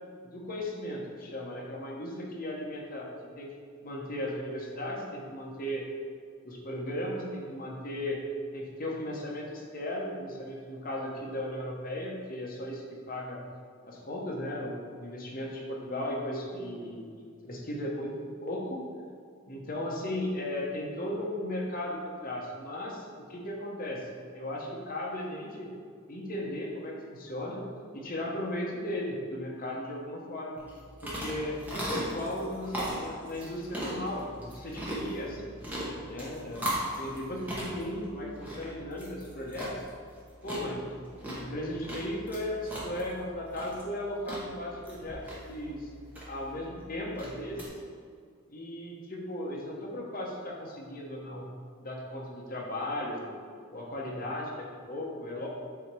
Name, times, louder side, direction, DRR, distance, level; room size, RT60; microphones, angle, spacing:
voice 1, 0.3-3.5 3.8-5.8 6.4-8.2 8.5-13.4 13.8-18.8 19.5-24.1 24.3-25.7 26.1-27.6 27.9-30.6 31.0-35.5 36.0-39.8 40.4-40.8 41.3-45.9 46.3-47.7 48.5-51.5 51.8-53.3 53.7-55.5, left 1 dB, 40° left, -2 dB, 0.9 m, -36 dB
sound 1, 30.6-47.7, right 1 dB, 10° right, 1.0 m, -39 dB
7.1 x 2.8 x 4.7 m, 2.2 s
head